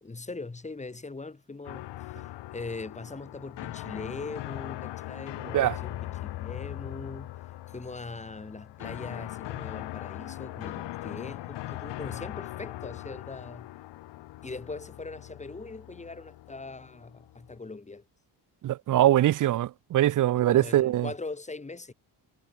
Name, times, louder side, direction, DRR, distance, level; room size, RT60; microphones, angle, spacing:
voice 1, 0.0-7.3 7.7-13.7 14.4-18.0 20.3-21.9, left 3 dB, 15° left, 2.4 m, -41 dB
sound 1, 1.6-17.6, left 16 dB, 80° left, 0.9 m, -40 dB
voice 2, 18.6-21.1, right 13 dB, 50° right, 0.5 m, -23 dB
cardioid pair, 120°, 41 cm